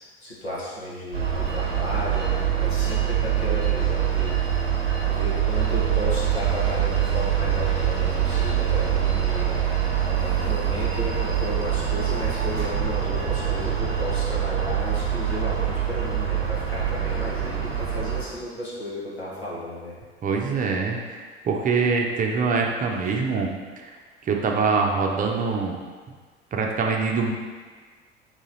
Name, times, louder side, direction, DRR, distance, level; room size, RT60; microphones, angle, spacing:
voice 1, 0.2-4.4 5.1-9.7 10.2-19.9, left 1 dB, 85° left, -6 dB, 1.0 m, -33 dB
sound 1, 1.1-18.2, right 9 dB, 85° right, 0.8 m, -24 dB
voice 2, 20.2-23.9 24.2-25.8 26.5-27.3, right 4 dB, 25° right, 1 dB, 0.6 m, -24 dB
4.0 x 3.0 x 3.9 m, 1.5 s
figure-of-eight pair, 65°, 31 cm